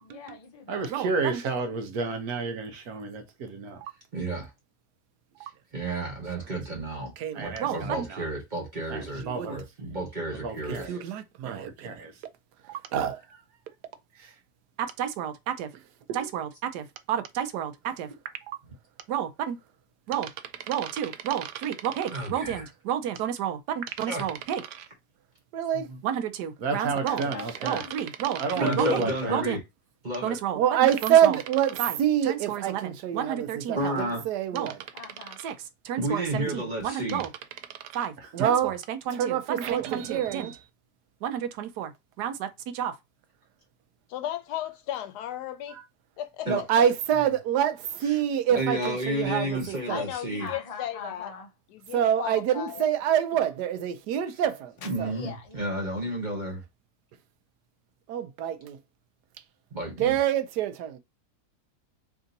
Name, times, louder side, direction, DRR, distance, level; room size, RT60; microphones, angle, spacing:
voice 1, 0.0-0.8 27.1-28.0 34.9-35.4 50.4-51.5 55.0-56.2, left 5 dB, 40° left, 0.5 m, -42 dB
voice 2, 0.7-3.8 7.3-8.3 8.9-9.7 10.3-11.0 11.4-11.9 14.1-14.4 26.6-27.8 28.4-29.4 38.2-38.3, right 3 dB, 70° right, 1.3 m, -31 dB
voice 3, 4.1-4.5 5.7-7.1 7.4-10.9 22.1-22.6 24.1-24.3 25.7-26.0 28.6-29.6 30.0-30.4 33.7-34.2 36.0-37.2 46.5-46.6 48.5-50.5 54.8-56.6 59.7-60.2, right 1 dB, 35° right, 1.0 m, -31 dB
voice 4, 7.2-8.1 9.2-9.5 10.7-11.7 12.9-13.2 15.0-15.7 16.1-18.1 19.1-19.6 20.1-24.9 25.5-27.2 27.6-29.0 29.3-29.6 30.2-34.9 35.4-35.5 35.8-37.3 37.9-40.6 41.2-41.9 42.2-42.5 42.7-42.9 45.7-45.8 46.5-50.0 51.9-54.7 55.0-55.1 58.1-58.7 60.0-61.0, right 10 dB, 90° right, 1.2 m, -27 dB
voice 5, 44.1-45.8 46.2-46.6 49.9-51.3 51.8-52.9, left 11 dB, 85° left, 1.2 m, -35 dB
3.5 x 2.6 x 3.9 m
omnidirectional pair, 1.7 m